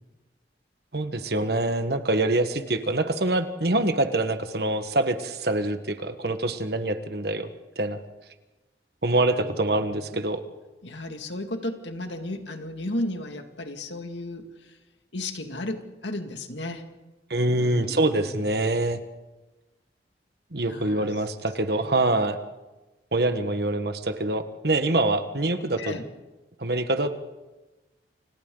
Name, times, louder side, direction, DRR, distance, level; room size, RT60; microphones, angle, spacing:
voice 1, 0.9-8.0 9.0-10.4 17.3-19.0 20.5-22.4 23.1-25.9 26.6-27.1, right 2 dB, 60° right, 8 dB, 1.4 m, -25 dB
voice 2, 9.4-10.2 10.8-14.8 15.1-16.8 17.5-18.4 20.6-21.1 21.6-21.9 25.8-26.0, left 1 dB, 90° left, 5 dB, 2.2 m, -34 dB
29.5 x 26.5 x 3.9 m, 1.1 s
head